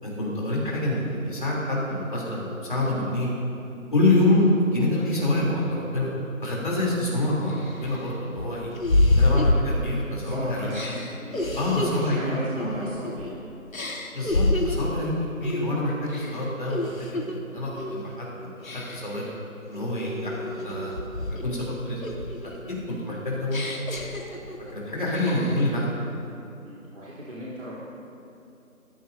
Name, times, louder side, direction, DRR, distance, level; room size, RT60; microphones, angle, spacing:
voice 1, 0.0-3.3 3.9-6.1 6.4-8.7 9.1-11.0 11.5-12.9 14.1-19.3 19.7-20.9 21.4-23.6 24.3-24.5 24.7-25.9, left 1 dB, 35° left, -5 dB, 3.2 m, -27 dB
sound 1, 6.9-7.0 7.5-10.2 10.7-13.3 13.7-15.0 15.4-15.7 16.1-17.4 17.8-18.1 18.6-19.2 19.7-21.7 22.0-24.7 25.1-25.7, left 2 dB, 70° left, 1.7 m, -27 dB
voice 2, 10.2-10.9 11.2-13.4 26.6-27.8, right 1 dB, 60° right, -9 dB, 3.4 m, -36 dB
20.5 x 14.0 x 2.7 m, 2.7 s
figure-of-eight pair, 175°, 42 cm